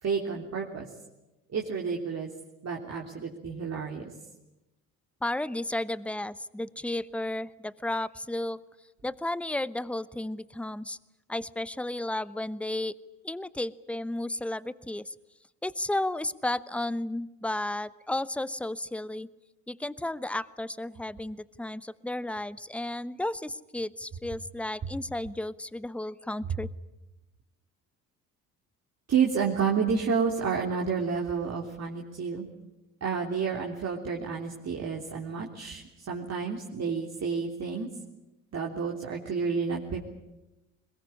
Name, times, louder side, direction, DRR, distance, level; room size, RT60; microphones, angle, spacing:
voice 1, 0.0-0.9 1.5-2.3 2.6-4.1 29.1-32.5 33.0-37.9 38.5-40.0, right 6 dB, 40° right, -1 dB, 3.3 m, -30 dB
voice 2, 5.2-8.6 9.0-11.0 11.3-12.9 13.2-15.1 15.6-19.3 19.7-26.7, left 1 dB, 5° left, 18 dB, 0.9 m, -33 dB
22.0 x 20.5 x 9.9 m, 0.99 s
hypercardioid pair, 60°, 39 cm